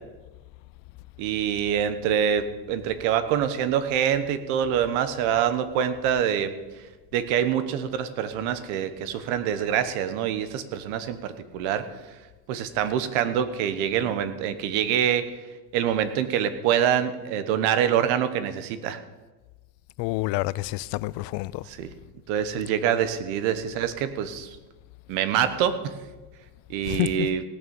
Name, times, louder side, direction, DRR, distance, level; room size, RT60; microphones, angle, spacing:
voice 1, 1.2-6.8 7.1-11.9 12.5-15.3 15.7-19.0 21.6-21.9 22.3-24.6 25.1-25.9 26.7-27.4, right 9 dB, 80° right, 1.3 m, -25 dB
voice 2, 20.0-21.6 26.9-27.3, left 19 dB, 60° left, 0.5 m, -28 dB
17.5 x 6.5 x 7.1 m
cardioid pair, 135°, 48 cm